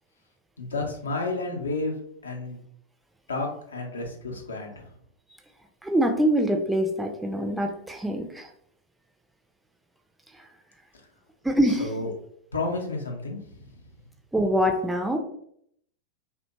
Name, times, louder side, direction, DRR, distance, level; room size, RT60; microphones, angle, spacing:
voice 1, 0.6-2.0 2.2-2.6 3.3-4.9 11.8-12.1 12.5-13.6, left 2 dB, 75° left, 0 dB, 0.6 m, -31 dB
voice 2, 5.8-8.5 11.4-11.9 14.3-15.2, equal, 5° right, 3 dB, 0.4 m, -24 dB
2.6 x 2.1 x 2.8 m, 0.68 s
figure-of-eight pair, 90°, 0 cm